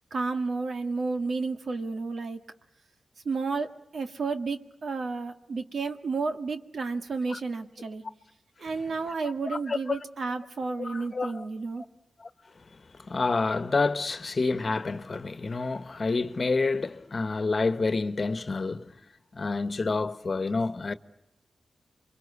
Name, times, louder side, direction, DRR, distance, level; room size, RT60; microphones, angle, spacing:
voice 1, 0.1-2.4 3.3-8.0 8.6-11.8, right 4 dB, 70° right, 2.0 m, -31 dB
voice 2, 9.1-10.0 10.7-11.4 12.2-12.3 12.7-18.9 19.3-20.9, left 3 dB, 45° left, 1.3 m, -29 dB
28.5 x 24.0 x 8.4 m
cardioid pair, 75°, 0 cm